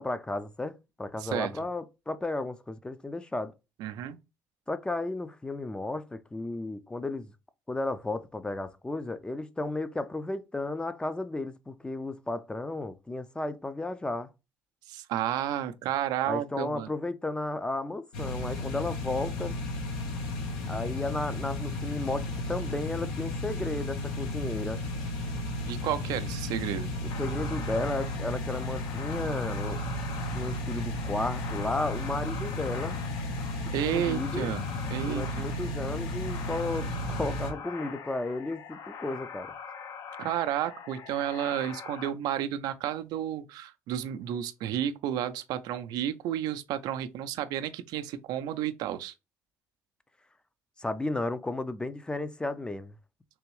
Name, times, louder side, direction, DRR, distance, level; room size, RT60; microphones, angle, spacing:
voice 1, 0.0-3.5 4.7-7.3 7.7-14.3 16.2-19.5 20.7-24.8 27.2-29.8 30.3-33.0 33.8-34.5 35.0-39.5 50.8-52.9, left 2 dB, 15° left, 0.4 m, -33 dB
voice 2, 1.2-1.5 3.8-4.2 14.9-16.9 25.7-26.9 33.7-34.6 34.9-35.5 40.2-49.1, right 11 dB, 75° right, 0.4 m, -31 dB
sound 1, 18.1-37.5, left 1 dB, 90° left, 1.0 m, -34 dB
sound 2, 27.1-42.1, left 6 dB, 60° left, 0.6 m, -43 dB
3.4 x 3.0 x 3.1 m
supercardioid pair, 80°, 7 cm